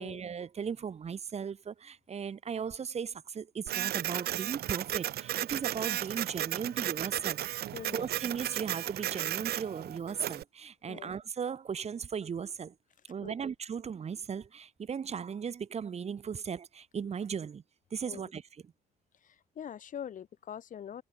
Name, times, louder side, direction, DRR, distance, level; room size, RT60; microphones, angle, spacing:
voice 1, 0.0-7.4 7.9-12.7 13.1-17.6 17.9-18.4, right 7 dB, 40° right, 7.7 m, -37 dB
Printer, 3.7-10.4, right 13 dB, 70° right, 6.2 m, -34 dB
voice 2, 7.7-8.1 10.9-11.1 13.2-13.3 18.0-18.3 19.2-21.0, left 9 dB, 50° left, 5.0 m, -43 dB
cardioid pair, 110°, 17 cm